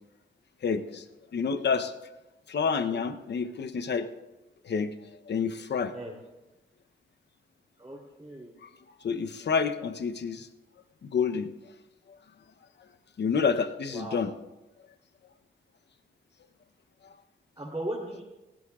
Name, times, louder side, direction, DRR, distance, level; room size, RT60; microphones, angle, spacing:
voice 1, 0.6-1.1 1.3-1.9 2.5-4.1 4.6-5.9 8.6-8.7 9.0-10.5 11.0-11.5 12.1-12.2 13.2-14.3 17.0-17.1, left 5 dB, 60° left, 9 dB, 0.8 m, -29 dB
voice 2, 7.8-8.5 13.9-14.2 17.6-18.2, right 1 dB, 15° right, -4 dB, 3.4 m, -37 dB
18.5 x 16.0 x 2.4 m, 1.1 s
cardioid pair, 55°, 20 cm